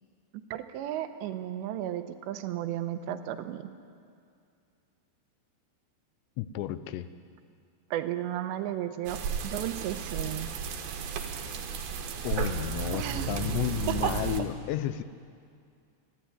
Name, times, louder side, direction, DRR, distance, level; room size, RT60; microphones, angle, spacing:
voice 1, 0.3-3.7 7.9-10.5 12.9-13.3 13.9-14.1, right 12 dB, 85° right, 9 dB, 3.0 m, -34 dB
voice 2, 6.4-7.1 12.2-15.0, left 11 dB, 80° left, 13 dB, 2.9 m, -32 dB
sound 1, 9.1-14.4, right 6 dB, 65° right, 2.8 m, -33 dB
27.0 x 11.0 x 9.9 m, 2.3 s
omnidirectional pair, 5.1 m